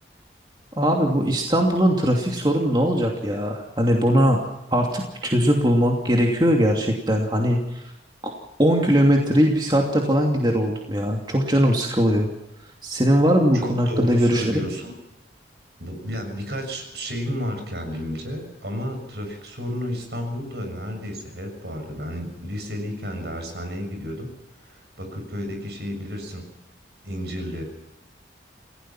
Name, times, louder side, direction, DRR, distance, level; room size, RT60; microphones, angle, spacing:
voice 1, 0.8-4.4 4.7-7.8 8.6-12.3 12.8-14.7, equal, 25° right, 0 dB, 2.7 m, -20 dB
voice 2, 13.5-14.9 15.8-24.3 24.6-26.4 27.0-27.6, equal, 70° right, 5 dB, 6.9 m, -32 dB
28.0 x 17.0 x 6.0 m, 0.87 s
head